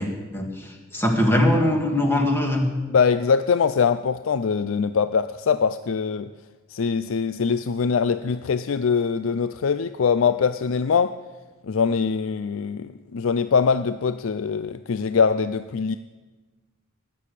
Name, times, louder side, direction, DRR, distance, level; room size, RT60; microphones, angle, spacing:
voice 1, 0.0-2.6, left 1 dB, 10° left, 1 dB, 2.2 m, -22 dB
voice 2, 2.9-6.3 6.7-11.1 11.7-16.0, left 6 dB, 70° left, 11 dB, 0.4 m, -22 dB
19.0 x 6.9 x 8.4 m, 1.3 s
head